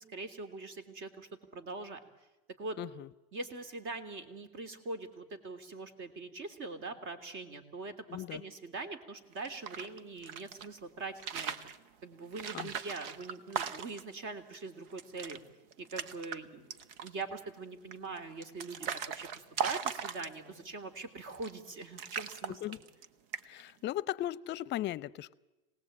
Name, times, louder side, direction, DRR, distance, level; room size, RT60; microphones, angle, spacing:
voice 1, 0.0-2.0 2.6-2.8 3.3-11.6 12.0-15.4 15.8-16.7 17.0-22.6, right 3 dB, 45° right, 9 dB, 3.3 m, -42 dB
voice 2, 2.8-3.1 8.1-8.4 12.5-12.7 22.5-22.8 23.4-25.3, left 13 dB, 35° left, 19 dB, 0.7 m, -37 dB
sound 1, 9.3-10.7 11.1-11.8 12.3-14.1 14.5-14.6 14.9-15.4 15.7-16.4 16.7-17.2 17.9-20.6 21.3-21.7 22.0-23.1 23.3-23.7, right 7 dB, 70° right, 1.4 m, -39 dB
26.5 x 19.0 x 8.8 m, 1.1 s
supercardioid pair, 120°, 30 cm